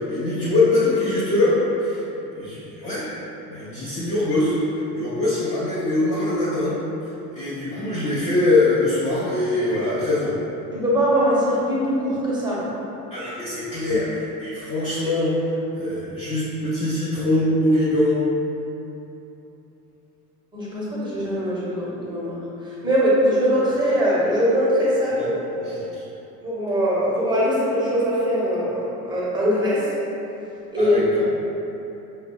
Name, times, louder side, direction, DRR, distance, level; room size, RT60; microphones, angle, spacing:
voice 1, 0.0-2.1 2.3-3.1 3.5-6.8 7.0-10.4 13.1-18.2 25.1-25.3 25.6-26.1 30.8-31.3, left 2 dB, 15° left, -9 dB, 0.4 m, -23 dB
voice 2, 10.7-12.7 20.5-22.4 22.8-25.7 26.4-29.9 30.7-31.2, equal, 10° right, -7 dB, 0.9 m, -21 dB
5.6 x 2.0 x 2.2 m, 2.9 s
figure-of-eight pair, 65°, 47 cm